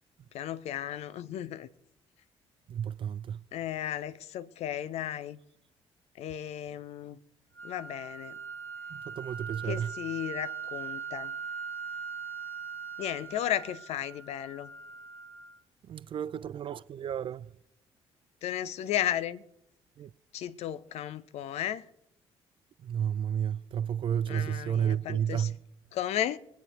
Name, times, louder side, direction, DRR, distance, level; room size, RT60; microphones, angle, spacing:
voice 1, 0.3-1.7 3.5-5.4 6.2-7.2 7.6-8.4 9.7-11.3 13.0-14.7 18.4-19.4 20.3-21.9 24.3-25.5 25.9-26.4, left 11 dB, 55° left, 0.6 m, -34 dB
voice 2, 2.7-3.4 8.9-9.9 15.9-17.5 20.0-20.1 22.8-25.6, right 9 dB, 40° right, 0.4 m, -32 dB
sound 1, 7.6-15.6, right 6 dB, 15° left, 2.0 m, -41 dB
24.5 x 9.2 x 3.0 m
figure-of-eight pair, 45°, 14 cm